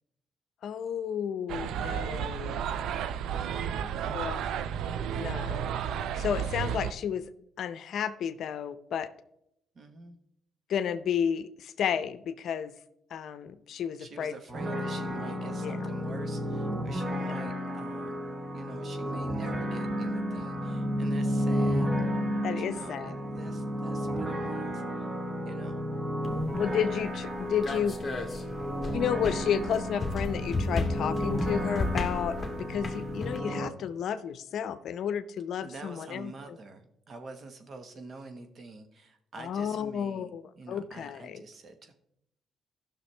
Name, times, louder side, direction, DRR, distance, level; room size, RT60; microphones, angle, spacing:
voice 1, 0.6-2.6 4.1-4.4 5.2-5.6 6.1-7.2 7.6-9.1 10.7-12.7 13.1-14.3 15.6-15.8 17.2-17.3 22.4-23.2 26.5-28.0 28.9-36.3 39.4-41.4, left 8 dB, 70° left, 12 dB, 0.6 m, -32 dB
sound 1, 1.5-6.9, right 8 dB, 80° right, 0.4 m, -32 dB
voice 2, 3.5-3.9 9.7-10.1 14.0-18.2 18.5-21.9 22.5-25.1 25.5-25.8 35.6-41.9, right 3 dB, 50° right, 7 dB, 1.3 m, -46 dB
sound 2, 14.5-33.7, equal, 25° right, 1.2 m, -32 dB
sound 3, 26.2-33.4, left 3 dB, 25° left, 1.5 m, -35 dB
15.0 x 6.2 x 3.3 m, 0.77 s
cardioid pair, 90°, 0 cm